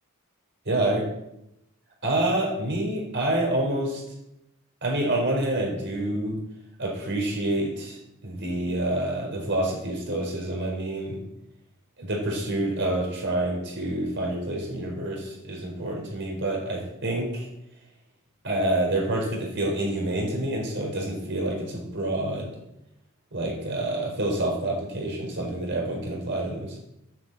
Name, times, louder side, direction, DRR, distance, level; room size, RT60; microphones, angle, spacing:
voice 1, 0.7-1.0 2.0-4.0 4.8-6.4 6.8-11.2 12.0-17.5 18.4-22.5 23.3-26.8, right 1 dB, 55° right, 0 dB, 4.6 m, -27 dB
9.3 x 8.3 x 7.7 m, 0.85 s
head